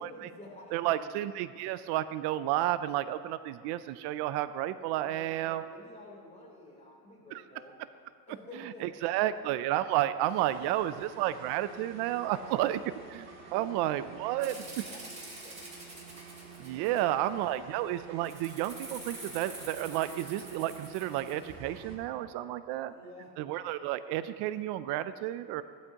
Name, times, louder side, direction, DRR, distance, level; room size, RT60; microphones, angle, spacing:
voice 1, 0.0-1.1 5.0-7.8 8.3-9.5 10.0-10.1 10.6-11.0 12.6-12.7 13.5-13.9 14.3-15.7 16.8-17.0 22.8-23.4, left 1 dB, 15° left, -4 dB, 3.8 m, -51 dB
voice 2, 0.7-5.6 7.3-7.4 8.8-12.8 13.1-14.5 16.6-22.9 23.4-25.6, right 13 dB, 75° right, 13 dB, 0.5 m, -31 dB
sound 1, 10.3-22.0, right 5 dB, 40° right, 2.5 m, -49 dB
Rattle (instrument), 14.4-17.3 18.2-21.5, right 2 dB, 15° right, 2.8 m, -47 dB
18.0 x 12.5 x 2.9 m, 2.2 s
cardioid pair, 140°, 41 cm